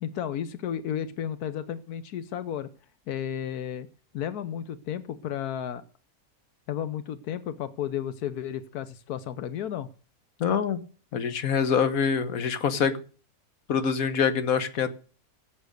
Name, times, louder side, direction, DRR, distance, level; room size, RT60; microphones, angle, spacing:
voice 1, 0.0-2.7 3.1-3.9 4.1-5.8 6.7-9.9, left 9 dB, 90° left, 13 dB, 1.4 m, -33 dB
voice 2, 10.4-10.8 11.1-13.0 13.7-14.9, left 6 dB, 70° left, 11 dB, 1.6 m, -25 dB
16.5 x 8.2 x 6.6 m, 0.40 s
omnidirectional pair, 1.6 m